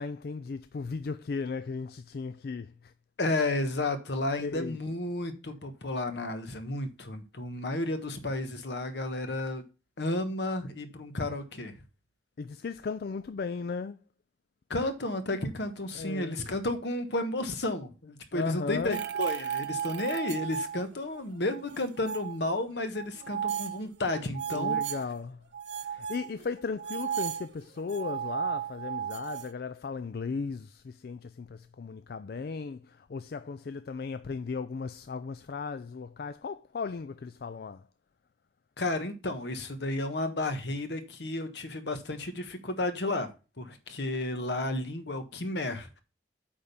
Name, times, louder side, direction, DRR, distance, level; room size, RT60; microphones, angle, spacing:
voice 1, 0.0-2.9 4.4-4.8 12.4-14.0 15.9-16.4 18.3-19.1 24.5-25.4 25.7-37.9, left 4 dB, 60° left, 0.4 m, -36 dB
voice 2, 3.2-9.6 10.0-11.8 14.7-24.8 38.8-43.3 43.6-46.0, left 2 dB, 75° left, 1.3 m, -32 dB
sound 1, 18.9-21.2 21.5-22.4 22.9-25.1 25.5-29.5, right 8 dB, 90° right, 0.6 m, -34 dB
8.7 x 3.7 x 6.8 m
head